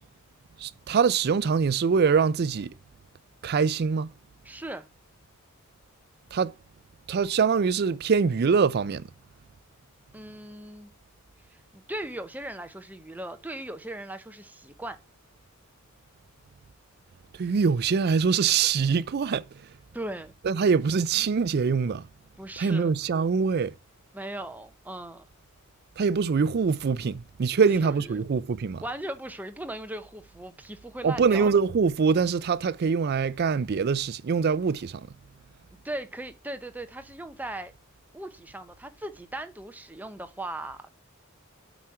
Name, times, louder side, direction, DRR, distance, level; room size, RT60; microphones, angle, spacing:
voice 1, 0.6-2.7 3.4-4.1 6.3-6.5 7.1-9.0 17.3-19.7 20.4-22.1 22.6-23.7 26.0-28.8 31.0-35.1, right 5 dB, 50° right, 0.4 m, -24 dB
voice 2, 4.4-4.9 10.1-10.9 11.5-15.0 19.9-20.3 22.4-22.9 24.1-25.2 27.6-28.2 28.8-31.5 35.8-37.7 38.1-40.9, right 1 dB, 10° right, 0.7 m, -38 dB
8.1 x 4.3 x 4.7 m
head